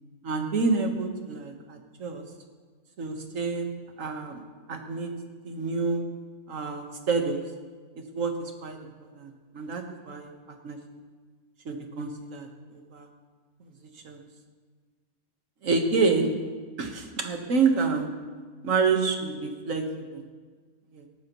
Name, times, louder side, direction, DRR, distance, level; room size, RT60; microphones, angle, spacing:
voice 1, 0.2-2.2 3.0-3.7 4.0-4.4 4.7-5.1 5.4-6.0 6.5-7.4 8.1-10.8 11.7-13.1 14.0-14.3 15.6-16.4 16.8-18.1 18.6-19.9 20.1-20.2 20.9-21.1, right 4 dB, 60° right, 4 dB, 1.7 m, -28 dB
19.5 x 13.5 x 3.1 m, 1.5 s
omnidirectional pair, 1.6 m